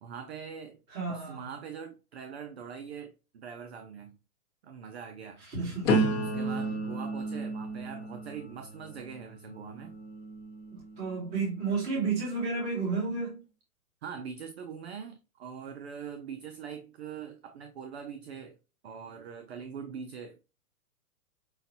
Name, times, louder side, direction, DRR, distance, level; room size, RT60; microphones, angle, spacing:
voice 1, 0.0-0.8 1.1-4.2 4.6-5.5 6.3-10.0 14.0-18.6 18.8-20.4, right 7 dB, 45° right, 0.5 m, -42 dB
voice 2, 0.9-1.4 5.5-5.9 11.0-13.4, right 4 dB, 30° right, 1.9 m, -31 dB
sound 1, 5.9-11.7 12.3-12.7, right 1 dB, 20° left, 1.1 m, -33 dB
5.7 x 2.5 x 2.7 m
hypercardioid pair, 155°, 45 cm